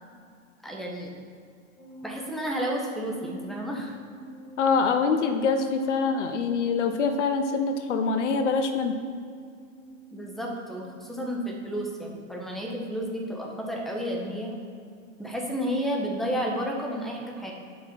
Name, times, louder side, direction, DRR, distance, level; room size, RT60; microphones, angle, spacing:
voice 1, 0.6-1.1 2.0-4.0 10.1-14.5 15.2-17.5, equal, ahead, -1 dB, 1.3 m, -31 dB
sound 1, 1.8-11.5, right 2 dB, 85° left, 2.7 m, -46 dB
voice 2, 4.6-9.0, left 5 dB, 60° left, 7 dB, 0.9 m, -25 dB
9.9 x 5.7 x 5.6 m, 2.3 s
hypercardioid pair, 115°, 40 cm